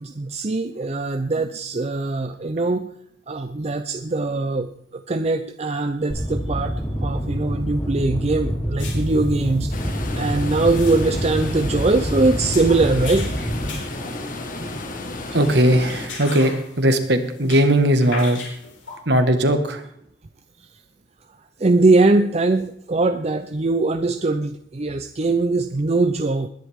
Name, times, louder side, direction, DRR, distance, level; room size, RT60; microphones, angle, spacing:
voice 1, 0.0-2.9 3.3-6.7 7.0-13.3 15.3-15.4 21.6-26.5, right 3 dB, 35° right, 8 dB, 0.6 m, -21 dB
sound 1, 6.1-13.7, equal, 25° left, 4.1 m, -26 dB
sound 2, 8.8-19.0, left 4 dB, 85° left, 4.6 m, -39 dB
sound 3, 9.7-16.1, left 2 dB, 45° left, 1.7 m, -32 dB
voice 2, 15.3-16.5 16.8-18.4 19.1-19.8, right 1 dB, 60° right, 7 dB, 1.6 m, -18 dB
20.5 x 10.5 x 3.6 m, 0.69 s
head